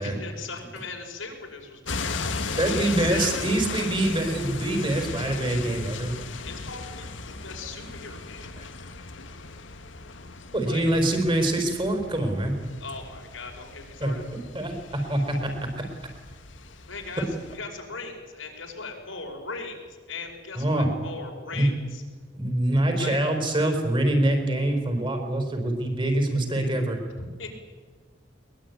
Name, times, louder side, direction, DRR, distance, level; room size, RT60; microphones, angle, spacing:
voice 1, 0.0-3.5 6.4-8.5 10.6-10.8 12.8-14.2 16.9-22.0 23.0-23.2 27.2-27.5, left 4 dB, 90° left, 2 dB, 5.3 m, -39 dB
sound 1, 1.8-17.6, left 3 dB, 75° left, 1.7 m, -36 dB
voice 2, 2.6-6.1 10.5-12.5 14.0-14.1 14.5-15.9 20.5-20.9 21.5-21.7 22.3-27.0, right 1 dB, 25° right, 4 dB, 4.5 m, -25 dB
22.0 x 21.5 x 9.6 m, 1.5 s
head